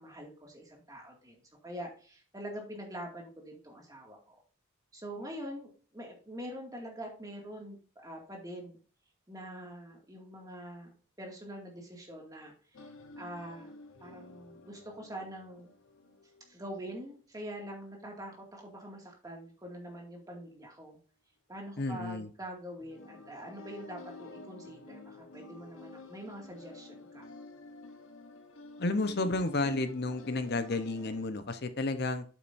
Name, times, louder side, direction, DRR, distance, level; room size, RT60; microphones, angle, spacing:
voice 1, 0.0-4.4 4.9-8.8 9.3-12.9 13.2-13.7 14.0-15.7 16.5-21.0 21.5-27.3, right 1 dB, 20° right, 2.2 m, -44 dB
sound 1, 12.7-16.9 22.8-31.3, left 2 dB, 75° left, 1.1 m, -51 dB
voice 2, 21.8-22.3 28.8-32.2, left 2 dB, 55° left, 0.9 m, -31 dB
8.7 x 7.9 x 2.7 m
head